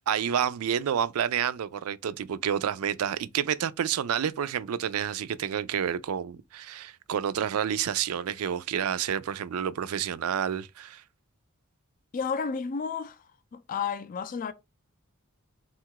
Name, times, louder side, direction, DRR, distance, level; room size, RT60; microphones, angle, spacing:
voice 1, 0.1-11.0, right 8 dB, 70° right, 0.4 m, -29 dB
voice 2, 12.1-13.2 13.5-14.5, left 6 dB, 40° left, 0.4 m, -31 dB
3.8 x 2.4 x 4.5 m
head